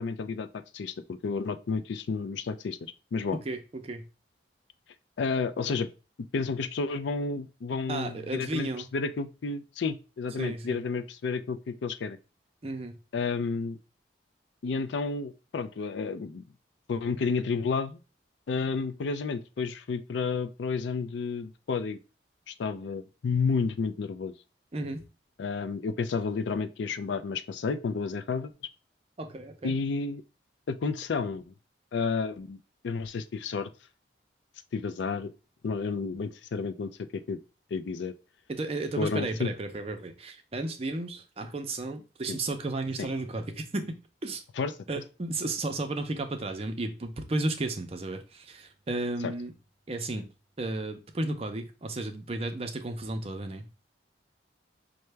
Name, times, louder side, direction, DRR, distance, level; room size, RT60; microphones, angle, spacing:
voice 1, 0.0-2.8 3.1-3.4 5.2-5.9 6.3-12.2 13.1-13.8 14.6-16.4 16.9-18.0 18.5-22.0 22.5-24.3 25.4-28.5 29.6-30.2 30.7-31.5 31.9-33.7 34.7-35.3 35.6-37.4 37.7-38.1 39.0-39.5 42.3-42.4 43.0-43.1 44.6-44.7 49.2-49.3, left 4 dB, 75° left, 12 dB, 0.4 m, -31 dB
voice 2, 3.3-4.1 7.9-8.9 10.4-10.8 12.6-13.0 24.7-25.1 29.2-29.7 38.5-44.0 44.2-44.4 44.9-49.5 49.9-50.3 50.6-53.7, right 2 dB, 30° right, 6 dB, 0.5 m, -33 dB
5.6 x 2.1 x 3.2 m, 0.32 s
head